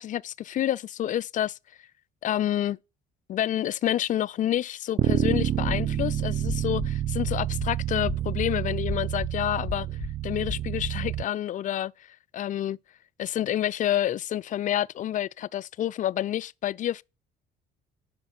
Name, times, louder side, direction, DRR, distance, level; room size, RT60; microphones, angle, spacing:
voice 1, 0.0-1.6 2.2-2.8 3.3-9.9 10.2-11.9 12.3-12.8 13.2-17.0, left 12 dB, 50° left, 0.4 m, -28 dB
Bass guitar, 5.0-11.2, right 11 dB, 45° right, 0.5 m, -28 dB
sound 1, 5.6-6.1 6.5-6.9 7.3-7.7 8.1-8.5 8.9-9.3 9.7-10.1 10.5-10.9, left 5 dB, 15° left, 4.0 m, -36 dB
9.5 x 6.4 x 6.1 m
cardioid pair, 110°, 17 cm